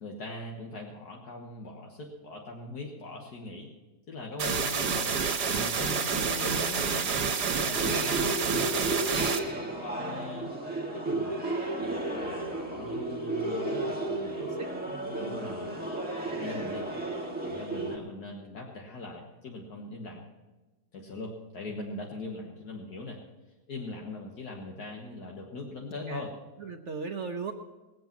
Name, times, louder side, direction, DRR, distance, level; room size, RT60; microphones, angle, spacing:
voice 1, 0.0-3.7 4.1-5.1 5.5-8.7 9.8-10.5 10.9-11.4 11.8-14.5 15.1-15.8 16.1-16.9 17.4-20.2 20.9-23.2 23.7-26.3, left 2 dB, 70° left, 0 dB, 1.9 m, -41 dB
sound 1, 4.4-9.4, right 5 dB, 80° right, 1.7 m, -28 dB
sound 2, 7.7-18.0, right 2 dB, 5° right, 1.5 m, -33 dB
voice 2, 14.4-15.3 26.1-26.3 26.6-27.5, right 5 dB, 55° right, 4 dB, 1.0 m, -38 dB
20.0 x 7.9 x 5.9 m, 1.1 s
omnidirectional pair, 1.7 m